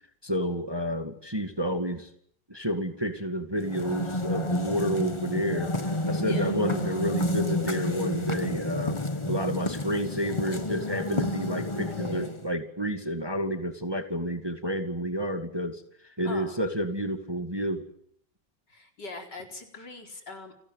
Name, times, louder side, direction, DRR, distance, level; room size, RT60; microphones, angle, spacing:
voice 1, 0.2-2.1 2.5-5.7 6.1-9.0 9.3-15.8 16.2-17.8, equal, 15° right, 7 dB, 2.1 m, -30 dB
sound 1, 3.6-12.5, left 1 dB, 15° left, 1.4 m, -30 dB
voice 2, 16.2-16.6 18.7-20.5, left 3 dB, 60° left, 4 dB, 4.9 m, -41 dB
30.0 x 19.5 x 9.2 m, 0.67 s
omnidirectional pair, 2.0 m